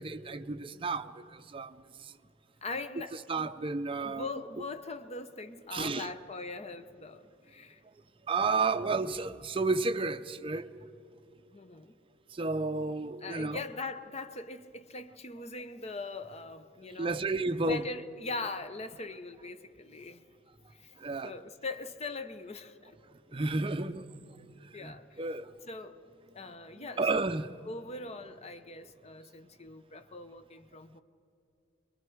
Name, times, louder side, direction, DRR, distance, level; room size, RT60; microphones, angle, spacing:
voice 1, 0.0-1.7 3.3-4.3 5.7-6.1 8.3-10.7 12.4-13.6 17.0-17.8 21.0-21.3 23.3-24.1 24.8-25.5 27.0-27.5, right 3 dB, 25° right, 0.6 m, -31 dB
voice 2, 2.6-3.5 4.0-7.8 11.5-11.9 13.2-17.2 17.7-20.2 20.7-20.9 21.2-23.0 24.7-25.2 25.7-26.0 26.3-27.2 27.7-31.0, left 3 dB, 30° left, 0.8 m, -41 dB
28.0 x 22.5 x 4.7 m
head